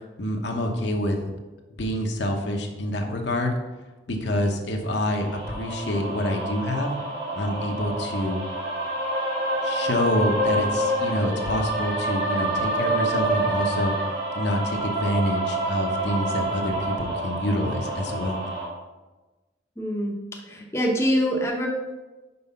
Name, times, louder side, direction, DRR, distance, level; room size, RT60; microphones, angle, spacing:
voice 1, 0.2-1.2 1.8-3.5 4.1-6.9 7.3-8.4 9.6-13.9 14.3-18.4, left 1 dB, 70° left, 2 dB, 1.0 m, -27 dB
sound 1, 5.1-18.6, right 1 dB, 65° right, 2.3 m, -27 dB
voice 2, 19.8-21.7, equal, 15° left, -1 dB, 0.8 m, -25 dB
5.6 x 4.8 x 5.5 m, 1.2 s
head